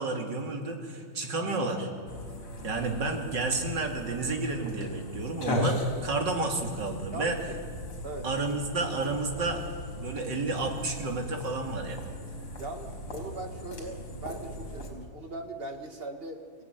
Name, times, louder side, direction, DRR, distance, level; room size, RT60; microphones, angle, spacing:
voice 1, 0.0-1.9 2.6-7.4 8.2-9.6 10.0-12.2, right 3 dB, 55° right, 2 dB, 3.2 m, -31 dB
sound 1, 2.1-14.9, left 2 dB, 90° left, 4.8 m, -38 dB
voice 2, 7.1-7.6 8.0-8.3 12.6-16.6, right 2 dB, 30° right, 5 dB, 1.8 m, -40 dB
27.5 x 16.0 x 9.6 m, 2.1 s
omnidirectional pair, 2.4 m